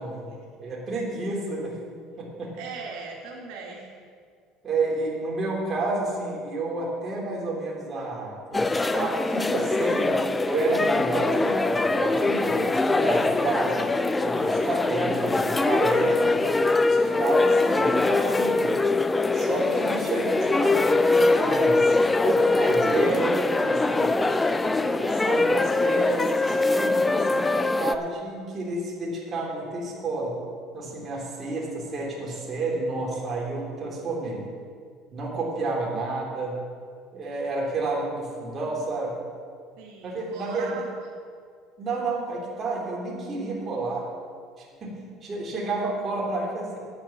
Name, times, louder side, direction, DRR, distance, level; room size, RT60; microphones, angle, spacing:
voice 1, 0.0-1.8 2.2-2.5 4.6-10.2 10.5-13.9 14.2-16.3 16.8-18.8 19.3-24.1 24.8-30.4 30.7-34.5 35.1-36.6 37.1-39.2 40.0-40.8 41.8-44.1 44.6-46.8, right 2 dB, 30° right, -3 dB, 3.4 m, -30 dB
voice 2, 2.6-3.9 39.8-41.1, right 4 dB, 70° right, -2 dB, 1.8 m, -39 dB
sound 1, 8.5-27.9, left 2 dB, 15° left, 0.5 m, -23 dB
9.1 x 8.7 x 7.3 m, 2.1 s
supercardioid pair, 120°, 0 cm